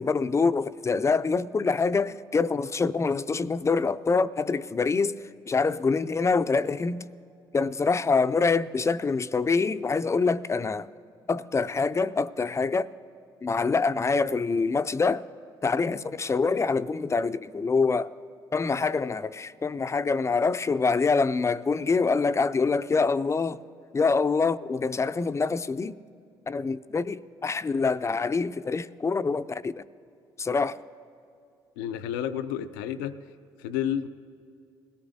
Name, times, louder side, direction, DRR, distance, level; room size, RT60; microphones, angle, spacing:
voice 1, 0.0-5.2 5.5-7.0 7.5-10.9 11.3-12.9 13.4-15.2 15.6-18.1 18.5-23.6 23.9-25.9 26.5-29.7 30.4-30.8, left 4 dB, 25° left, 0.4 m, -25 dB
voice 2, 31.8-33.2 33.6-34.1, left 10 dB, 85° left, 0.5 m, -30 dB
21.0 x 14.5 x 2.7 m
hypercardioid pair, 60°, 11 cm